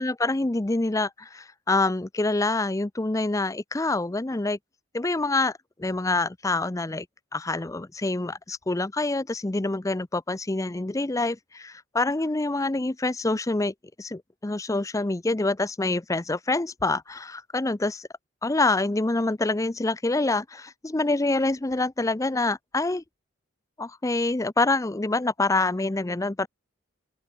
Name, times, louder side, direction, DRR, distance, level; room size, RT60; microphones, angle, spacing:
voice 1, 0.0-4.6 4.9-7.1 7.3-18.1 18.4-23.0 23.8-26.5, left 2 dB, 15° left, 0.5 m, -26 dB
open air
head